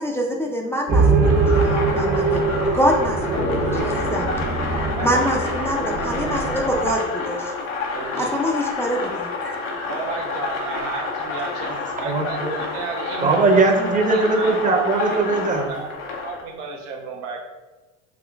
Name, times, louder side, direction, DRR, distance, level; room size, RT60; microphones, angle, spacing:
voice 1, 0.0-2.4 2.7-4.3 5.0-7.5 8.2-9.6, equal, 5° left, -2 dB, 0.4 m, -25 dB
sound 1, 0.9-7.0, right 3 dB, 50° right, 1.2 m, -22 dB
sound 2, 1.2-16.4, left 3 dB, 90° left, 0.9 m, -29 dB
sound 3, 3.4-6.8, left 3 dB, 55° left, 0.7 m, -34 dB
voice 2, 7.9-8.3 9.9-11.7 12.0-13.5 14.1-15.2 15.7-17.4, right 5 dB, 80° right, 0 dB, 0.9 m, -33 dB
voice 3, 11.6-12.5 13.2-15.7, right 3 dB, 20° right, 2 dB, 0.8 m, -20 dB
5.0 x 3.0 x 2.4 m, 1.2 s
supercardioid pair, 90°, 36 cm